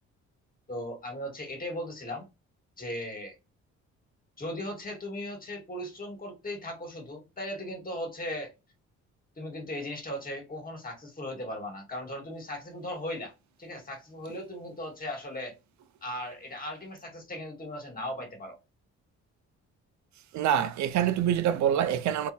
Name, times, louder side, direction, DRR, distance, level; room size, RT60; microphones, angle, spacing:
voice 1, 0.7-2.3 2.8-3.4 4.4-8.5 9.4-13.3 13.6-15.6 16.0-18.6, left 1 dB, 30° left, 1.7 m, -37 dB
voice 2, 20.3-22.3, right 9 dB, 70° right, 0.5 m, -25 dB
3.7 x 2.7 x 2.7 m
cardioid pair, 90°, 30 cm